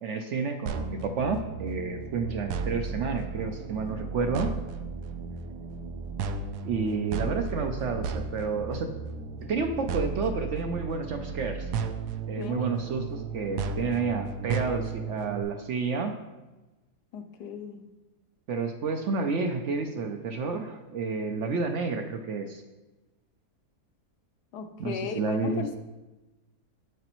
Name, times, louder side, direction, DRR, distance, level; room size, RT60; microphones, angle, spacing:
voice 1, 0.0-4.5 6.6-8.9 9.5-11.7 12.3-16.2 18.5-22.6 24.8-25.8, right 4 dB, 65° right, 5 dB, 0.7 m, -30 dB
sound 1, 0.7-15.4, right 5 dB, 85° right, 1.1 m, -34 dB
voice 2, 12.4-12.8 17.1-17.9 24.5-25.7, left 6 dB, 85° left, 8 dB, 1.2 m, -36 dB
8.0 x 7.7 x 3.0 m, 1.1 s
omnidirectional pair, 1.7 m